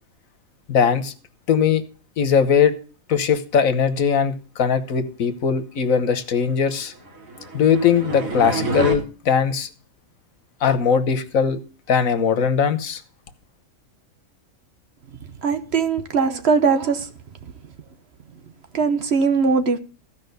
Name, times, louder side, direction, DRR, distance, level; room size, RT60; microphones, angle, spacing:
voice 1, 0.7-1.1 1.5-1.8 2.2-2.7 3.1-6.9 7.5-9.7 10.6-11.6 11.9-13.0, left 7 dB, 85° left, 1.5 m, -20 dB
sound 1, 7.0-8.9, right 2 dB, 90° right, 3.0 m, -28 dB
voice 2, 15.4-17.1 18.7-19.8, right 5 dB, 55° right, 1.2 m, -20 dB
15.0 x 5.3 x 6.8 m
omnidirectional pair, 1.4 m